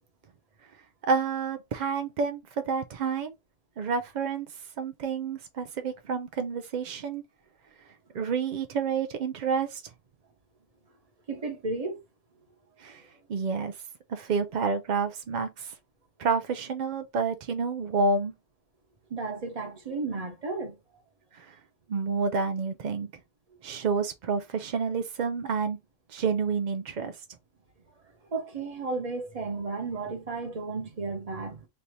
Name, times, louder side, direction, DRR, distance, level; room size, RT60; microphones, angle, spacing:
voice 1, 1.0-3.3 3.8-7.2 8.1-9.8 12.8-13.0 13.3-13.8 14.1-15.7 16.2-18.3 21.3-21.6 21.9-23.1 23.6-25.8 26.1-27.1, right 5 dB, 65° right, 0.4 m, -29 dB
voice 2, 11.3-12.0 19.1-20.8 28.3-31.7, right 3 dB, 35° right, 1.0 m, -33 dB
3.3 x 2.7 x 4.2 m
omnidirectional pair, 1.3 m